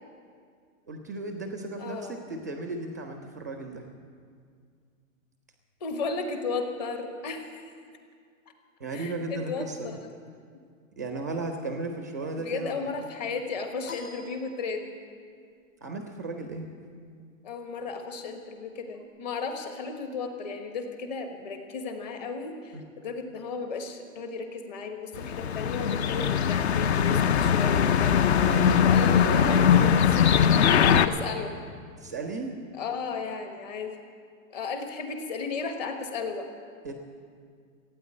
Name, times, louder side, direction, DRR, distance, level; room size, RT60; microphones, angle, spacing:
voice 1, 0.9-3.9 8.8-10.0 11.0-12.8 15.8-16.7 22.7-22.8 28.4-29.9 32.0-32.5 36.8-36.9, right 2 dB, 15° right, 4 dB, 0.4 m, -34 dB
voice 2, 1.8-2.2 5.8-7.6 8.9-10.1 12.4-15.0 17.4-28.3 28.8-31.5 32.7-34.0 34.5-36.5, left 4 dB, 30° left, 5 dB, 1.3 m, -35 dB
sound 1, 13.9-15.2, left 4 dB, 75° left, 2.5 m, -45 dB
sound 2, 25.2-31.1, left 8 dB, 50° left, 0.6 m, -21 dB
16.5 x 9.2 x 8.6 m, 2.1 s
hypercardioid pair, 175°, 41 cm